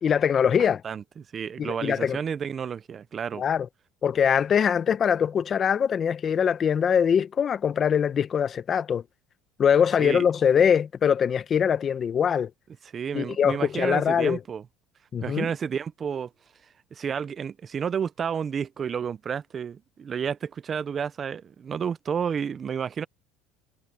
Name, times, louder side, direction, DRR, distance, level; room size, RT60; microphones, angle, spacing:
voice 1, 0.0-0.8 1.6-2.2 3.4-3.7 4.0-9.0 9.6-12.5 13.1-14.4 15.1-15.5, left 7 dB, 35° left, 0.9 m, -23 dB
voice 2, 0.6-3.4 10.0-10.3 12.9-14.6 15.2-16.3 16.9-23.1, right 7 dB, 30° right, 0.5 m, -31 dB
supercardioid pair, 120°, 0 cm